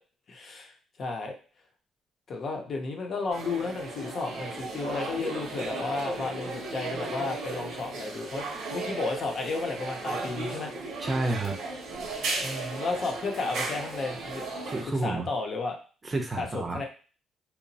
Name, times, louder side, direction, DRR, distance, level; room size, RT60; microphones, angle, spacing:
voice 1, 0.3-0.7 1.0-1.3 2.3-10.7 12.4-14.5 15.0-15.8 16.4-16.9, left 3 dB, 50° left, 2 dB, 0.6 m, -33 dB
sound 1, 3.3-14.8, right 3 dB, 75° right, 0.7 m, -35 dB
voice 2, 11.0-11.6 14.6-15.3 16.0-16.8, right 2 dB, 30° right, 3 dB, 0.5 m, -30 dB
2.9 x 2.0 x 2.7 m, 0.37 s
cardioid pair, 95°, 0 cm